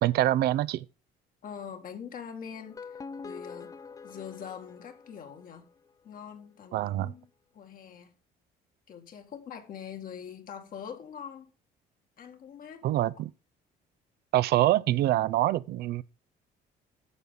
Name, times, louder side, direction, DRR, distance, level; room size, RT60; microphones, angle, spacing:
voice 1, 0.0-0.9 6.7-7.1 12.8-13.3 14.3-16.0, right 14 dB, 70° right, 0.5 m, -25 dB
voice 2, 1.4-3.8 4.0-5.7 6.0-8.1 8.9-11.5 12.2-12.9, left 7 dB, 55° left, 1.9 m, -43 dB
sound 1, 2.5-5.7, left 5 dB, 20° left, 0.4 m, -45 dB
12.5 x 7.0 x 3.8 m
cardioid pair, 110°, 17 cm